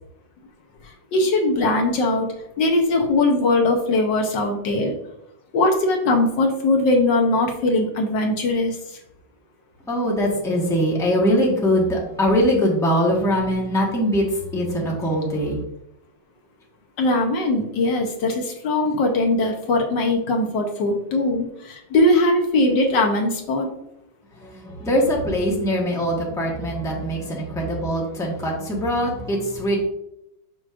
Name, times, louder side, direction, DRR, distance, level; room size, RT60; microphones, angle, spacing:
voice 1, 1.1-4.9 5.5-9.0 17.0-23.7, left 2 dB, 70° left, 3 dB, 1.5 m, -20 dB
voice 2, 9.9-15.6 24.4-29.8, equal, ahead, -3 dB, 1.1 m, -22 dB
6.2 x 6.2 x 2.5 m, 0.80 s
omnidirectional pair, 2.1 m